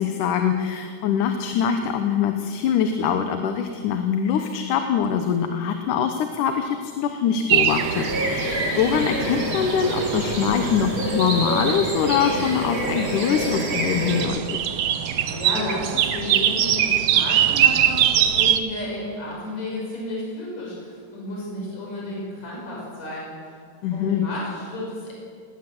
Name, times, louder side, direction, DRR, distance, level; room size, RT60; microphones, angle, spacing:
voice 1, 0.0-14.4 23.8-24.2, left 7 dB, 85° left, 6 dB, 2.6 m, -23 dB
sound 1, 7.5-18.6, right 10 dB, 65° right, 1.7 m, -24 dB
sound 2, 7.7-14.2, right 1 dB, 40° right, 3.9 m, -27 dB
voice 2, 15.2-23.3 23.9-25.1, left 1 dB, 60° left, -4 dB, 6.9 m, -32 dB
19.5 x 18.5 x 7.9 m, 2.1 s
omnidirectional pair, 3.5 m